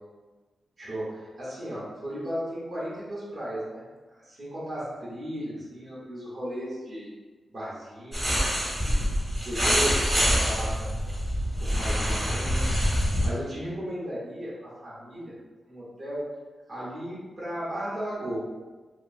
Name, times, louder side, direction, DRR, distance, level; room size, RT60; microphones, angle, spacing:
voice 1, 0.8-3.9 4.2-7.1 7.5-9.0 9.4-10.9 11.6-12.7 13.2-15.3 15.7-16.3 16.7-18.4, equal, 50° right, -8 dB, 0.9 m, -35 dB
sound 1, 8.1-13.3, equal, 20° right, 0.8 m, -25 dB
2.9 x 2.7 x 2.5 m, 1.3 s
wide cardioid pair, 145°, 0 cm